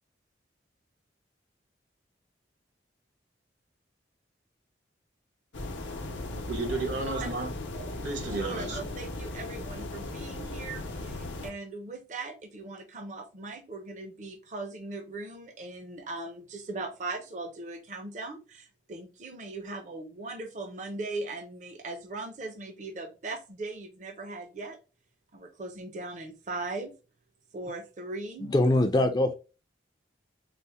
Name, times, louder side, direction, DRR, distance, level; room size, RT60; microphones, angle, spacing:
sound 1, 5.5-11.5, left 2 dB, 80° left, 0.7 m, -37 dB
voice 1, 6.3-8.9, right 2 dB, 80° right, 1.2 m, -34 dB
voice 2, 8.3-24.8 25.3-27.0 27.5-28.5, right 2 dB, 40° right, 0.5 m, -39 dB
voice 3, 28.4-29.3, left 1 dB, 20° left, 0.3 m, -23 dB
4.1 x 2.0 x 3.4 m
head